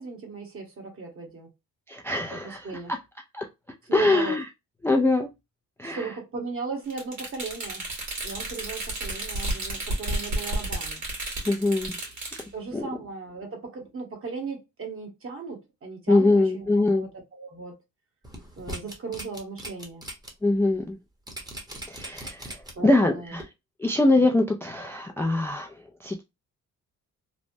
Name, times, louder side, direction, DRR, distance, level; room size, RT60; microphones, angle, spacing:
voice 1, 0.0-1.5 2.3-2.9 3.9-4.4 5.8-7.9 8.2-11.0 12.5-17.8 18.6-20.0 22.7-23.4, right 4 dB, 45° right, 1.2 m, -37 dB
voice 2, 1.9-2.6 3.3-3.5 3.9-4.4 4.8-5.3 5.8-6.0 11.5-12.0 12.7-12.8 16.1-17.1 20.4-21.0 21.9-23.4 23.8-25.7 26.0-26.2, left 2 dB, 10° left, 0.3 m, -23 dB
sound 1, 6.9-12.4, right 1 dB, 60° right, 1.7 m, -32 dB
sound 2, 18.2-20.3 20.7-20.8 21.3-22.9 23.4-23.5, right 1 dB, 10° right, 0.9 m, -39 dB
3.2 x 2.1 x 2.6 m
cardioid pair, 115°, 32 cm